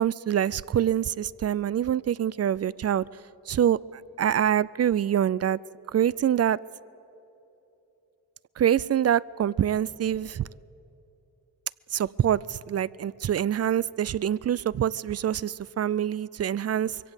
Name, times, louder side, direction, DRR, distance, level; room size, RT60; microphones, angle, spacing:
voice 1, 0.0-3.0 3.5-3.8 4.2-5.6 5.9-6.6 8.6-10.5 11.9-17.0, right 10 dB, 40° right, 21 dB, 0.4 m, -25 dB
22.5 x 17.0 x 8.1 m, 2.9 s
cardioid pair, 65°, 41 cm